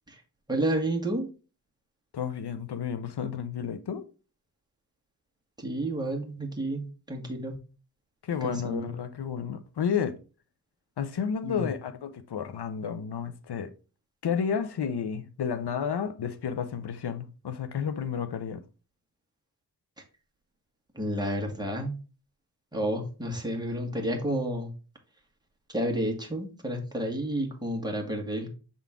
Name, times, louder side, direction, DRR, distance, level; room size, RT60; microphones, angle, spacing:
voice 1, 0.5-1.3 5.6-7.5 8.4-8.9 11.4-11.7 20.9-22.0 22.7-24.7 25.7-28.5, right 1 dB, 10° right, 1.6 m, -30 dB
voice 2, 2.1-4.1 8.2-10.2 11.0-13.7 14.2-18.6, left 7 dB, 80° left, 0.7 m, -31 dB
7.0 x 3.7 x 3.6 m
wide cardioid pair, 100°, 39 cm